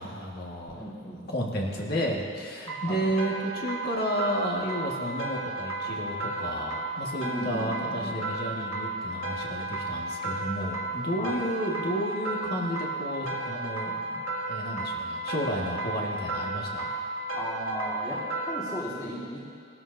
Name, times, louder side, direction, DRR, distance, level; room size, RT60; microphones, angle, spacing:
voice 1, 0.0-0.9 1.2-14.2 14.5-16.9, equal, 50° left, -1 dB, 1.7 m, -32 dB
voice 2, 0.8-1.3 2.9-3.0 7.2-8.2 11.2-11.4 17.3-19.4, equal, 15° left, -6 dB, 1.7 m, -36 dB
sound 1, 2.7-18.8, right 2 dB, 80° right, 1.6 m, -33 dB
19.0 x 12.5 x 2.7 m, 2.3 s
head